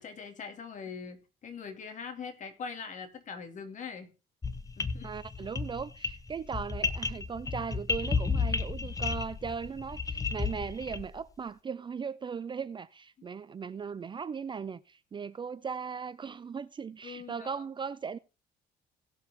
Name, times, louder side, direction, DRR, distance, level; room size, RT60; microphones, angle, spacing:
voice 1, 0.0-4.1 4.8-5.1 13.2-13.3 17.0-17.6, left 5 dB, 50° left, 2.4 m, -42 dB
sound 1, 4.4-11.2, left 4 dB, 20° left, 0.7 m, -33 dB
voice 2, 5.0-18.2, right 6 dB, 30° right, 0.5 m, -38 dB
17.5 x 7.1 x 3.6 m
cardioid pair, 110°, 17 cm